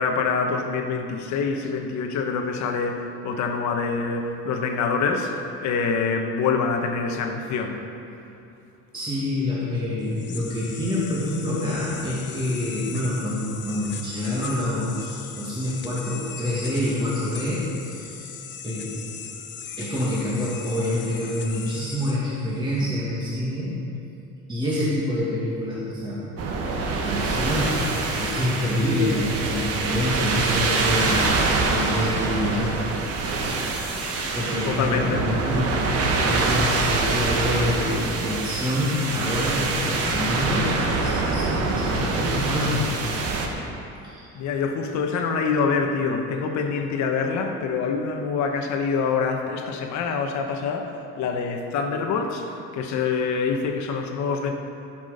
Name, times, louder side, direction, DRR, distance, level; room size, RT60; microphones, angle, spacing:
voice 1, 0.0-5.3 5.6-7.8 34.7-35.2 44.3-50.9 51.2-54.5, left 5 dB, 65° left, 3 dB, 1.2 m, -25 dB
voice 2, 8.9-18.4 18.6-19.1 19.8-23.8 24.5-26.3 26.9-27.8 28.1-31.3 31.6-32.8 33.1-33.4 34.0-35.7 36.2-43.7 44.0-44.3, left 1 dB, 15° right, -8 dB, 2.0 m, -27 dB
sound 1, 10.0-22.8, left 7 dB, 40° left, 0.8 m, -39 dB
sound 2, 26.4-43.5, right 3 dB, 50° right, 1.3 m, -25 dB
16.0 x 6.2 x 5.1 m, 2.8 s
cardioid pair, 145°, 30 cm